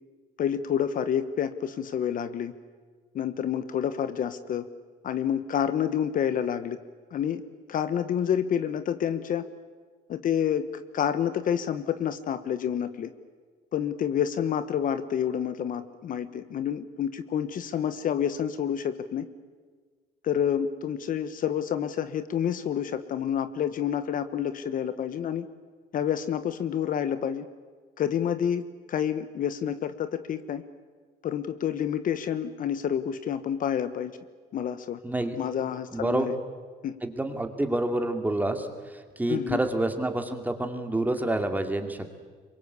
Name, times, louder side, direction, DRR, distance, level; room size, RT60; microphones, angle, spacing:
voice 1, 0.4-2.5 3.1-4.7 5.0-6.8 7.1-7.4 7.7-9.5 10.1-13.1 13.7-19.2 20.2-25.5 25.9-27.5 28.0-28.6 28.9-30.6 31.2-34.1 34.5-35.0 35.4-36.4 36.8-37.0 39.3-39.6, left 9 dB, 55° left, 12 dB, 1.2 m, -28 dB
voice 2, 35.0-35.4 35.9-36.3 37.0-38.7 39.2-42.0, right 1 dB, 10° right, 6 dB, 2.5 m, -28 dB
25.0 x 22.5 x 8.3 m, 1.5 s
cardioid pair, 110°, 17 cm